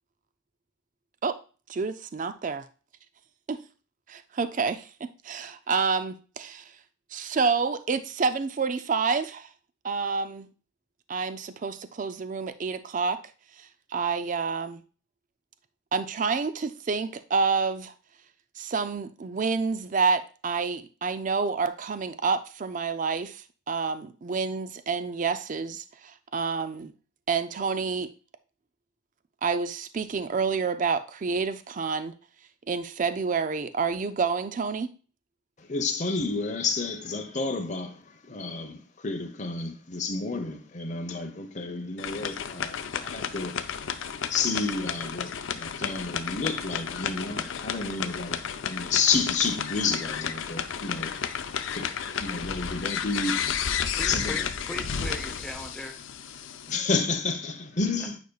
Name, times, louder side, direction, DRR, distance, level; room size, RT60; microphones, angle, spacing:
voice 1, 1.7-2.7 3.5-3.6 4.1-6.6 7.1-9.5 9.8-10.5 11.1-13.2 13.6-14.8 15.9-17.9 18.6-26.9 27.3-28.1 29.4-32.1 32.7-34.9, right 5 dB, 40° right, 0.4 m, -28 dB
voice 2, 35.6-38.0 38.3-43.6 44.3-51.1 51.7-53.4 54.1-54.4 56.7-58.2, left 4 dB, 35° left, 0.9 m, -30 dB
sound 1, 42.0-56.8, left 7 dB, 75° left, 0.6 m, -32 dB
voice 3, 54.0-56.0 58.0-58.1, left 1 dB, 5° left, 0.8 m, -38 dB
9.3 x 5.2 x 2.3 m
head